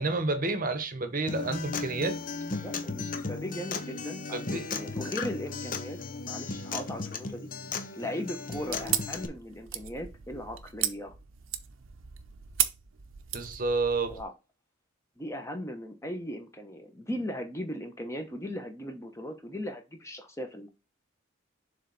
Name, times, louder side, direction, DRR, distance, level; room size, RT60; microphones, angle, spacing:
voice 1, 0.0-2.2 3.0-3.1 4.3-4.7 13.3-14.2, right 3 dB, 45° right, 0.9 m, -30 dB
Acoustic guitar, 1.3-9.3, left 4 dB, 45° left, 0.7 m, -36 dB
voice 2, 2.6-7.5 7.9-11.1 14.1-14.3 15.2-20.7, equal, 15° left, 1.0 m, -38 dB
sound 1, 8.5-14.2, right 11 dB, 80° right, 0.7 m, -35 dB
7.2 x 3.4 x 4.0 m
head